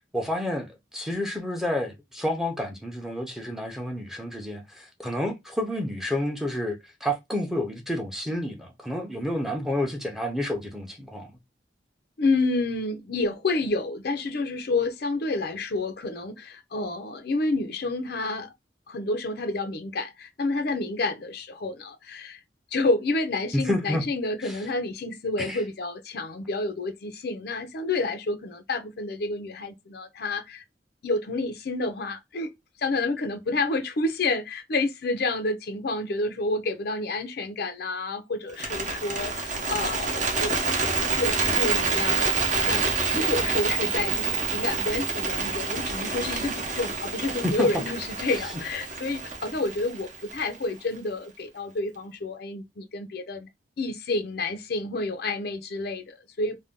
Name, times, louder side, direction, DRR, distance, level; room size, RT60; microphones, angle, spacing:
voice 1, 0.1-11.3 23.5-24.0 24.4-24.6 25.4-25.6 47.4-47.7, left 1 dB, ahead, 0.6 m, -29 dB
voice 2, 12.2-18.5 18.9-22.4 22.7-30.6 31.0-32.5 32.8-40.9 41.2-42.2 42.7-42.8 43.1-53.5 53.8-56.6, left 2 dB, 55° left, 0.5 m, -29 dB
Bird, 38.5-50.7, right 4 dB, 40° right, 0.7 m, -27 dB
2.6 x 2.2 x 3.5 m
head